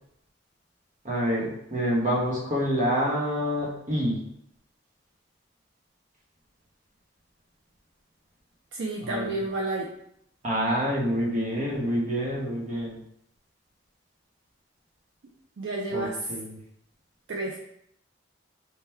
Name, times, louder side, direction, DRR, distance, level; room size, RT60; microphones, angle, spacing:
voice 1, 1.0-4.2 9.0-9.3 10.4-13.0 15.9-16.6, equal, 40° right, -3 dB, 1.0 m, -27 dB
voice 2, 8.7-9.9 15.6-16.3 17.3-17.6, right 2 dB, 65° right, -2 dB, 0.5 m, -30 dB
3.4 x 2.2 x 4.2 m, 0.73 s
head